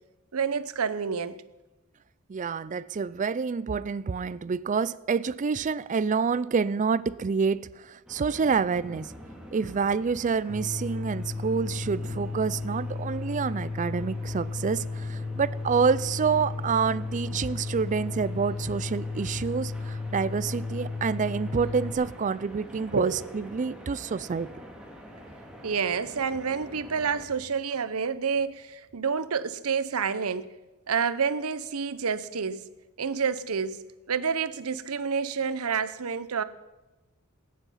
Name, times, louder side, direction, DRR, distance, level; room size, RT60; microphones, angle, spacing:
voice 1, 0.3-1.4 22.9-23.4 25.6-30.5 30.9-32.6 33.0-33.8 34.1-36.4, right 6 dB, 85° right, 0.8 m, -29 dB
voice 2, 2.3-9.1 9.5-24.5, right 5 dB, 35° right, 0.4 m, -28 dB
sound 1, 8.1-27.3, equal, 5° right, 2.2 m, -46 dB
sound 2, 10.5-21.9, left 3 dB, 80° left, 1.5 m, -34 dB
20.0 x 9.7 x 5.6 m
head